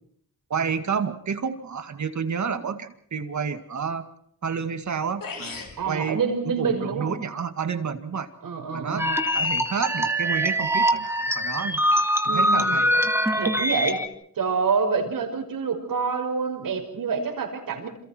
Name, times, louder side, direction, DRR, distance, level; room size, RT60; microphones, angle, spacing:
voice 1, 0.5-4.0 4.4-6.2 6.5-8.3 8.7-9.1 9.3-11.8 12.3-12.9, right 6 dB, 60° right, 8 dB, 2.3 m, -30 dB
sound 1, 4.8-4.9 5.2-5.8, left 4 dB, 85° left, 5.7 m, -35 dB
voice 2, 5.8-7.2 8.4-9.2 12.2-12.8 13.4-14.0 14.4-17.9, right 5 dB, 85° right, 4 dB, 5.9 m, -27 dB
sound 2, 9.0-14.1, equal, 5° right, 2.3 m, -23 dB
29.0 x 28.0 x 4.6 m, 0.67 s
wide cardioid pair, 115°, 33 cm